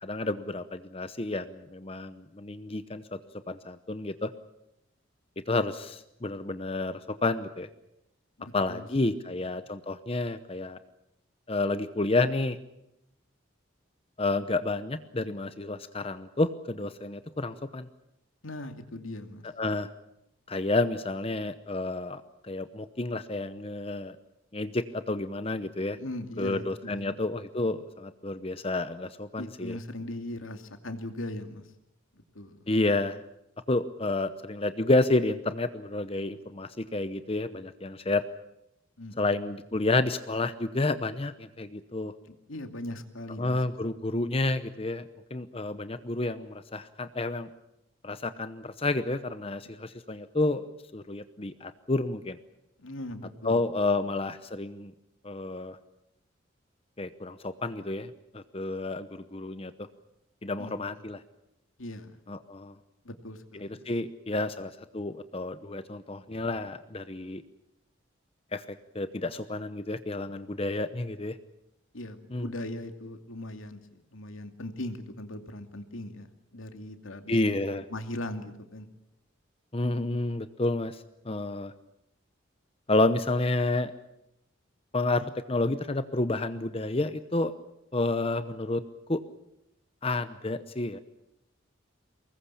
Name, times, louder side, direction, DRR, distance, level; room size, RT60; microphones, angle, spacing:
voice 1, 0.0-3.2 3.5-4.3 5.5-7.7 8.5-10.8 11.5-12.6 14.2-17.9 19.6-19.9 20.5-24.2 24.5-26.0 26.4-29.8 32.7-33.2 33.7-38.2 39.2-42.1 43.4-47.5 48.0-50.6 50.9-52.4 53.4-54.9 55.2-55.8 57.0-59.9 60.4-61.2 62.3-62.7 63.5-67.4 68.5-68.6 68.9-71.4 72.3-72.5 77.3-77.8 79.7-81.7 82.9-83.9 84.9-87.5 87.9-88.8 89.1-89.2 90.0-91.0, left 2 dB, 30° left, 11 dB, 0.8 m, -30 dB
voice 2, 8.4-8.9 18.4-19.4 25.9-27.2 29.4-31.7 32.3-32.7 39.0-39.4 42.3-43.9 52.8-53.6 60.6-61.0 61.8-62.2 63.0-63.9 71.9-77.4 77.9-78.9, left 1 dB, 85° left, 7 dB, 2.6 m, -40 dB
24.5 x 20.5 x 8.5 m, 0.84 s
head